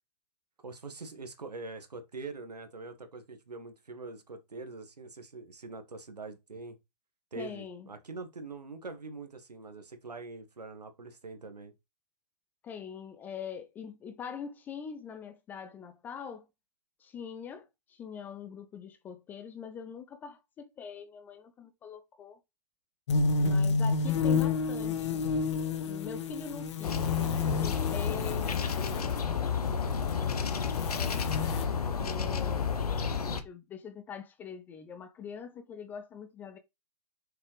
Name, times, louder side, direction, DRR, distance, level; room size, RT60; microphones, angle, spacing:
voice 1, 0.6-6.8 7.3-11.7, right 3 dB, 75° right, 1.6 m, -43 dB
voice 2, 7.3-7.9 12.6-16.5 17.0-22.4 23.4-25.2 25.8-27.1 27.4-29.8 30.1-31.2 32.0-32.8 33.2-36.6, left 7 dB, 10° left, 0.4 m, -43 dB
sound 1, 23.1-29.2 29.8-31.6, left 4 dB, 45° left, 1.0 m, -30 dB
sound 2, 26.8-33.4, left 6 dB, 65° left, 1.1 m, -31 dB
6.6 x 5.4 x 3.3 m
figure-of-eight pair, 125°, 21 cm